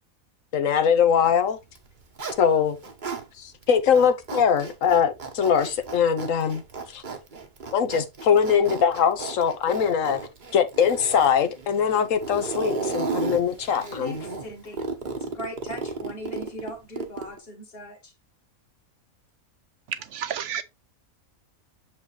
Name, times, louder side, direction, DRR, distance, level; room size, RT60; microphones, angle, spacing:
voice 1, 0.5-1.6 2.4-2.8 3.4-6.6 6.9-7.0 7.7-10.2 10.5-14.2, left 7 dB, 70° left, 1.2 m, -22 dB
Zipper (clothing), 1.6-3.2 3.6-17.4, right 4 dB, 35° right, 1.1 m, -34 dB
voice 2, 14.0-18.1, equal, 40° left, 2.1 m, -39 dB
voice 3, 19.9-20.6, right 9 dB, 65° right, 0.9 m, -31 dB
7.2 x 4.9 x 3.2 m
omnidirectional pair, 1.5 m